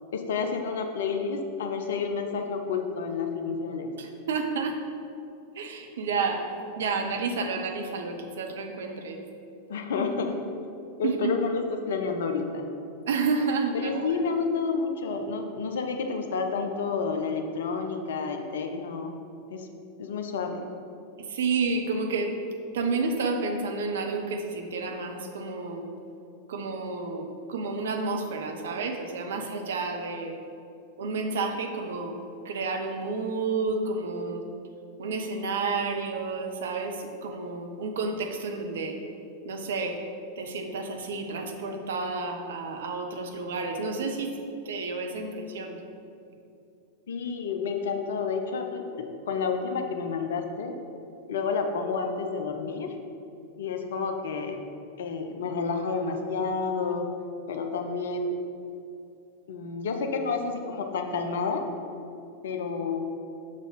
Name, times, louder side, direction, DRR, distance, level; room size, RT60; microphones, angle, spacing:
voice 1, 0.1-3.9 9.7-10.4 11.0-12.6 13.7-19.2 19.5-19.7 20.0-20.6 47.1-50.7 51.3-53.0 53.6-54.6 55.0-57.1 57.5-58.4 59.5-61.7 62.4-63.0, left 5 dB, 60° left, 5 dB, 0.6 m, -30 dB
voice 2, 4.0-4.8 5.5-9.2 11.0-11.4 13.1-14.2 21.2-22.4 22.7-25.9 26.5-30.4 31.0-32.2 32.4-34.4 35.0-39.0 39.4-40.0 40.4-44.4 44.6-45.8, right 4 dB, 60° right, 4 dB, 0.7 m, -30 dB
6.4 x 4.1 x 4.8 m, 2.6 s
figure-of-eight pair, 90°, 0 cm